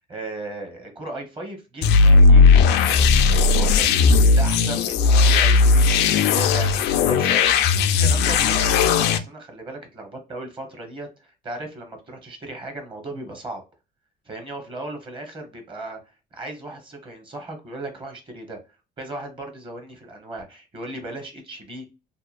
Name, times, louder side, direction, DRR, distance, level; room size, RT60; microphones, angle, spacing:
voice 1, 0.1-7.4 8.0-13.6 14.2-16.0 16.3-18.6 19.0-21.9, right 2 dB, 30° right, 4 dB, 0.9 m, -36 dB
sound 1, 1.8-9.2, left 4 dB, 80° left, 0.4 m, -16 dB
2.8 x 2.2 x 2.4 m, 0.29 s
cardioid pair, 110°, 17 cm